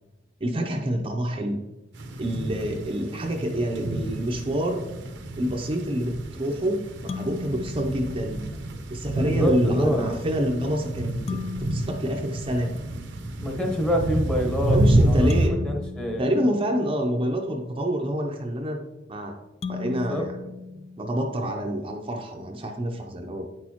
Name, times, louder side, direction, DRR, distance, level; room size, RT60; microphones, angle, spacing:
voice 1, 0.4-1.6 2.2-4.8 5.4-8.4 8.9-11.3 11.6-12.7 14.7-15.6 16.2-19.4 19.7-20.4 21.0-23.5, equal, 30° right, 1 dB, 0.6 m, -27 dB
sound 1, 1.9-15.5, right 1 dB, 75° right, 0.8 m, -28 dB
sound 2, 7.1-8.8 11.3-13.3 15.3-17.4 19.6-21.7, left 5 dB, 35° left, 0.3 m, -38 dB
voice 2, 9.2-10.2 13.4-14.8 15.1-15.3 15.6-16.3 19.7-20.3 20.8-20.9, equal, 5° left, 2 dB, 1.0 m, -26 dB
9.0 x 6.3 x 2.9 m, 1.1 s
head